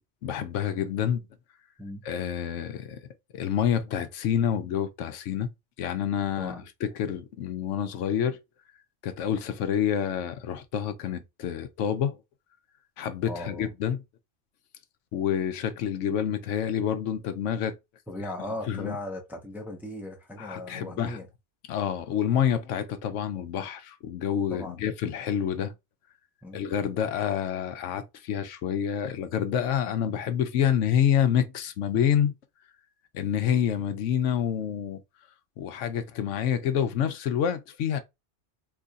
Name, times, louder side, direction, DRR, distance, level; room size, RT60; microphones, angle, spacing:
voice 1, 0.2-1.2 2.0-3.1 3.3-5.5 5.8-8.4 9.0-12.2 13.0-14.0 15.1-17.8 18.7-19.0 20.4-21.2 21.7-25.7 26.5-32.3 33.1-35.0 35.6-38.0, left 9 dB, 80° left, 0.9 m, -28 dB
voice 2, 13.3-13.7 18.1-21.3 24.5-24.8 26.4-26.6, left 1 dB, ahead, 0.6 m, -37 dB
3.0 x 2.4 x 3.9 m
omnidirectional pair, 1.2 m